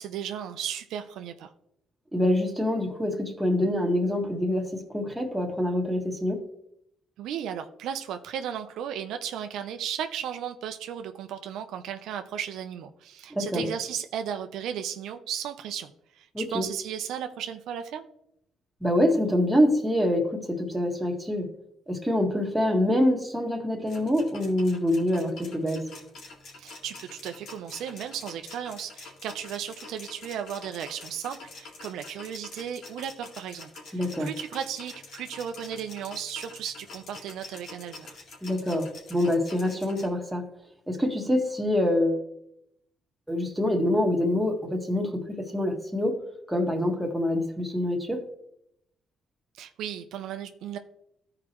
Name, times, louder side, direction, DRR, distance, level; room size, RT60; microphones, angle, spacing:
voice 1, 0.0-1.5 7.2-18.1 26.6-38.1 49.5-50.8, right 9 dB, 85° right, 7 dB, 0.6 m, -35 dB
voice 2, 2.1-6.4 13.3-13.7 16.3-16.7 18.8-21.5 21.9-25.9 33.9-34.3 38.4-40.5 40.9-42.2 43.3-46.2 46.5-48.2, left 1 dB, 5° right, 1 dB, 1.7 m, -25 dB
sound 1, 23.9-40.1, left 3 dB, 80° left, 2.2 m, -46 dB
14.0 x 4.9 x 3.1 m, 0.78 s
cardioid pair, 90°, 0 cm